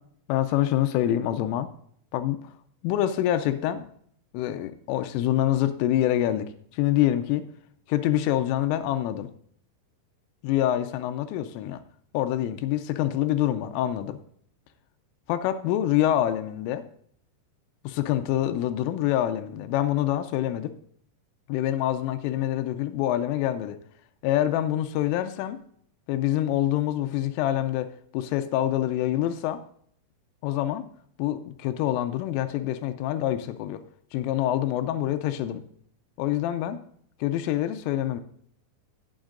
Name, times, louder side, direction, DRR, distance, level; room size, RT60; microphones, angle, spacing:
voice 1, 0.3-1.7 2.1-2.5 2.8-3.9 4.3-7.4 7.9-9.3 10.4-11.8 12.1-14.2 15.3-16.9 17.8-20.7 21.5-23.8 24.2-25.6 26.1-29.6 30.4-30.9 31.2-33.8 34.1-35.6 36.2-36.8 37.2-38.2, left 12 dB, 90° left, 9 dB, 3.3 m, -26 dB
18.0 x 7.2 x 2.5 m, 0.63 s
omnidirectional pair, 5.6 m